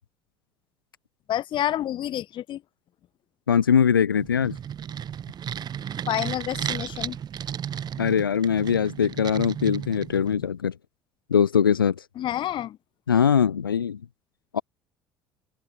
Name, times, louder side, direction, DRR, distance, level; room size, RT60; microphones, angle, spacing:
voice 1, 1.3-2.6 6.1-7.2 12.2-12.8, left 12 dB, 45° left, 1.0 m, -28 dB
voice 2, 3.5-4.6 8.0-10.7 11.3-12.1 13.1-14.0 14.5-14.6, left 7 dB, 85° left, 0.4 m, -21 dB
sound 1, 4.2-10.5, right 9 dB, 40° right, 1.2 m, -34 dB
figure-of-eight pair, 55°, 11 cm